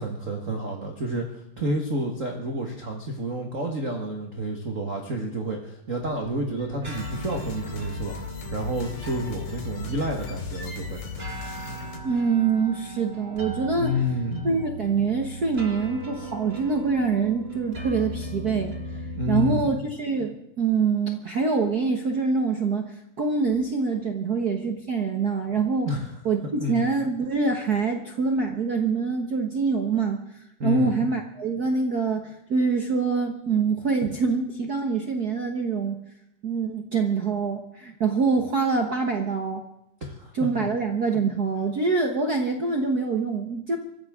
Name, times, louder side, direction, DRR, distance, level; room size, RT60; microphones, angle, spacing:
voice 1, 0.0-8.1 8.5-11.0 13.8-14.5 19.1-19.8 25.9-26.2 26.6-26.9 30.6-31.1 40.0-40.3 40.6-40.7, equal, 40° right, 1 dB, 1.1 m, -29 dB
sound 1, 6.0-19.7, right 1 dB, 20° right, 2.1 m, -38 dB
sound 2, 6.8-12.0, left 5 dB, 85° left, 4.3 m, -37 dB
voice 2, 12.0-13.9 14.4-18.7 19.3-25.9 26.2-30.2 30.6-36.0 36.4-39.6 40.3-43.8, right 4 dB, 70° right, 3 dB, 0.9 m, -25 dB
24.5 x 15.0 x 3.7 m, 0.81 s
omnidirectional pair, 3.8 m